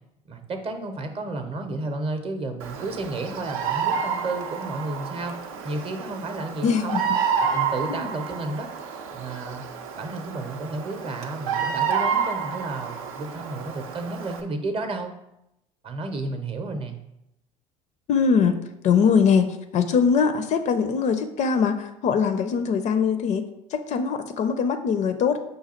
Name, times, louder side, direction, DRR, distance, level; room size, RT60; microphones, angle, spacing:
voice 1, 0.3-5.3 5.6-7.0 7.4-8.7 9.1-9.6 9.9-15.1 15.8-17.0, right 2 dB, 30° right, 6 dB, 0.7 m, -32 dB
Bird vocalization bird call bird song, 2.6-14.4, right 6 dB, 75° right, 0.5 m, -29 dB
voice 2, 6.6-7.0 7.9-8.1 18.1-18.6 18.8-23.4 23.7-25.4, left 6 dB, 45° left, 9 dB, 0.4 m, -22 dB
5.1 x 2.3 x 4.2 m, 0.86 s
hypercardioid pair, 65°, 18 cm